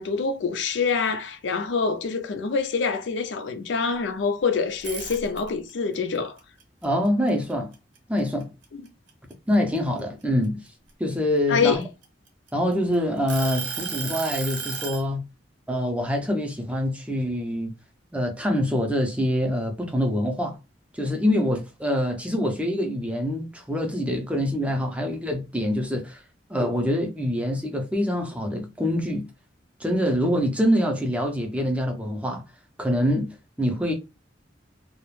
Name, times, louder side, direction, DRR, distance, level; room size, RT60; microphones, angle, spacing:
voice 1, 0.0-6.4 8.8-8.9 11.5-11.8, left 5 dB, 70° left, 0.4 m, -25 dB
sound 1, 4.7-5.7 6.1-8.0 8.4-8.6 9.1-10.9 11.6-12.7 13.3-15.0, right 6 dB, 80° right, 0.7 m, -33 dB
voice 2, 6.8-7.7 8.1-8.5 9.5-10.6 11.0-11.8 12.5-15.2 15.7-17.7 18.1-20.6 20.9-26.2 26.5-29.3 29.8-32.4 32.8-33.9, equal, 5° right, 0.5 m, -25 dB
2.3 x 2.0 x 3.1 m
head